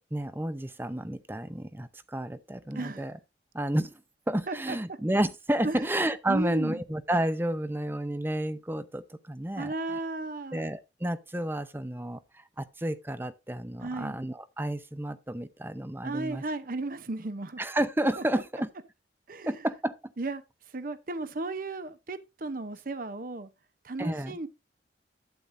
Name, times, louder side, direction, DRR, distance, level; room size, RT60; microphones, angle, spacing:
voice 1, 0.1-3.1 3.5-3.9 4.3-9.7 10.5-16.4 17.6-18.7 19.5-19.9 24.0-24.3, right 1 dB, 10° right, 0.6 m, -31 dB
voice 2, 2.7-3.1 4.5-5.0 5.6-5.9 6.3-6.8 9.6-10.7 13.8-14.2 16.0-17.6 18.2-18.3 19.3-19.6 20.2-20.4 20.7-23.5 23.8-24.5, right 2 dB, 50° right, 0.8 m, -35 dB
11.5 x 8.8 x 2.6 m
head